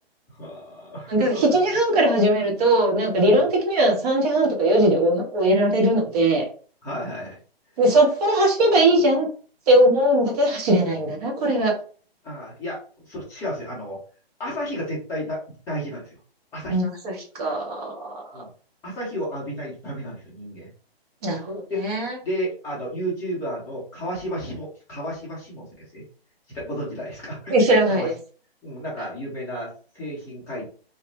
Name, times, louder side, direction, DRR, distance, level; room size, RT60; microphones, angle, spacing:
voice 1, 0.4-1.6 3.3-3.4 6.8-7.4 12.2-14.0 14.4-15.4 15.7-16.2 16.5-16.8 18.3-18.5 18.8-20.7 21.7-21.8 22.2-26.1 26.5-27.5 27.9-28.1 28.6-30.7, equal, 10° left, -5 dB, 0.7 m, -32 dB
voice 2, 1.1-6.4 7.8-9.3 9.7-11.7 16.7-18.4 21.2-22.1 27.5-28.1, right 1 dB, 40° right, -1 dB, 1.0 m, -20 dB
2.4 x 2.0 x 3.1 m, 0.41 s
hypercardioid pair, 150°, 31 cm